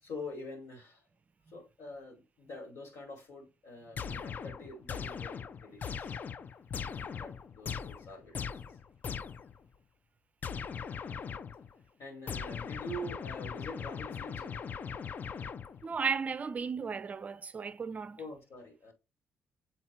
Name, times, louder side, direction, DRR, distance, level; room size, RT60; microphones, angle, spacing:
voice 1, 0.0-1.0 1.5-6.2 7.2-8.6 12.0-14.7 18.2-18.9, left 1 dB, 70° left, 2.5 m, -45 dB
sound 1, 4.0-9.6 10.4-11.7 12.3-16.0, left 6 dB, 40° left, 0.4 m, -40 dB
voice 2, 15.8-18.2, right 5 dB, 35° right, 0.4 m, -35 dB
7.2 x 4.2 x 3.1 m
cardioid pair, 110°, 5 cm